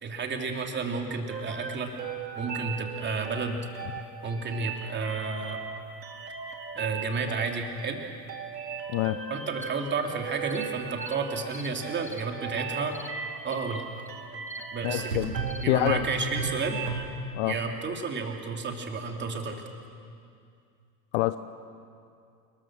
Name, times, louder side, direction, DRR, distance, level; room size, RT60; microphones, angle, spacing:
voice 1, 0.0-1.9 2.3-3.7 4.2-5.6 6.7-8.0 9.3-13.0 13.4-13.9 14.7-15.2 15.6-16.8 17.4-19.6, right 4 dB, 20° right, 3 dB, 2.9 m, -31 dB
sound 1, 1.3-17.1, right 5 dB, 80° right, 2.4 m, -36 dB
sound 2, 9.6-9.7 10.5-10.7 11.0-11.2 11.5-11.7 12.0-12.3 12.9-13.1 13.5-13.6 14.1-14.2 14.5-14.7 15.5-15.7, left 2 dB, 5° left, 0.8 m, -45 dB
voice 2, 14.8-15.3 15.7-16.0 17.3-17.5 21.1-21.4, left 18 dB, 45° left, 13 dB, 0.8 m, -25 dB
29.0 x 21.0 x 6.3 m, 2.4 s
figure-of-eight pair, 90°, 49 cm